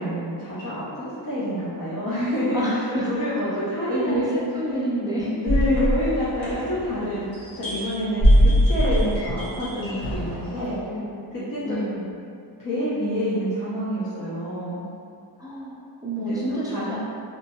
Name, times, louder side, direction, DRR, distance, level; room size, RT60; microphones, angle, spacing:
voice 1, 0.0-4.5 5.4-7.3 7.5-10.8 11.3-11.8 12.6-14.8 16.2-17.0, left 1 dB, 45° left, -11 dB, 0.8 m, -27 dB
voice 2, 2.5-3.1 3.3-3.4 3.9-5.4 10.6-12.1 15.4-17.0, right 1 dB, 10° right, -8 dB, 0.5 m, -29 dB
sound 1, 5.5-7.0 7.4-10.5, equal, 75° left, 1.2 m, -21 dB
2.8 x 2.6 x 2.2 m, 2.4 s
cardioid pair, 60°, 46 cm